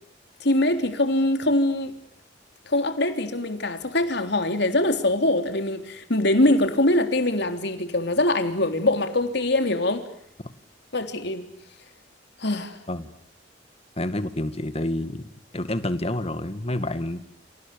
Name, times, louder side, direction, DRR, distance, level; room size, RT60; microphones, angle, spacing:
voice 1, 0.4-1.9 2.7-10.0 10.9-11.5 12.4-12.8, left 1 dB, 65° left, 7 dB, 3.6 m, -23 dB
voice 2, 14.0-15.3 15.5-17.2, left 1 dB, 35° left, 11 dB, 2.1 m, -28 dB
29.5 x 27.5 x 7.0 m, 0.65 s
head